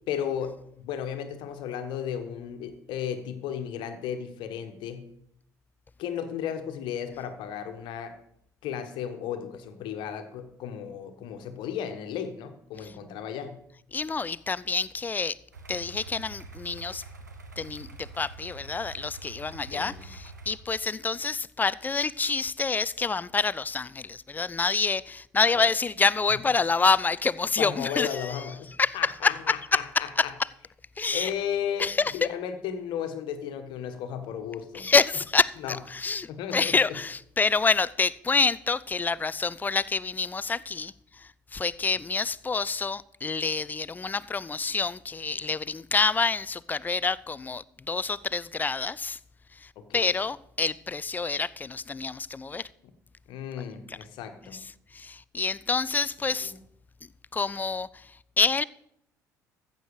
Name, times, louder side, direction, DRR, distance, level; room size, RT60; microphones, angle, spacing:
voice 1, 0.1-5.1 6.0-8.1 8.6-13.6 19.7-20.1 25.5-25.7 26.3-26.4 27.6-30.3 31.1-34.9 35.6-35.7 36.3-36.8 49.8-50.1 53.3-54.6 56.4-56.5, left 8 dB, 60° left, 1.4 m, -34 dB
voice 2, 13.9-15.4 15.7-17.0 17.6-28.4 28.8-30.3 31.0-31.3 31.8-32.2 34.7-49.2 49.6-52.7 53.9-54.0 54.5-54.6 54.9-56.5 57.3-58.1 58.4-58.6, left 4 dB, 20° left, 0.4 m, -27 dB
sound 1, 15.5-20.6, right 3 dB, 90° right, 1.0 m, -45 dB
14.5 x 7.5 x 4.9 m
figure-of-eight pair, 55°, 9 cm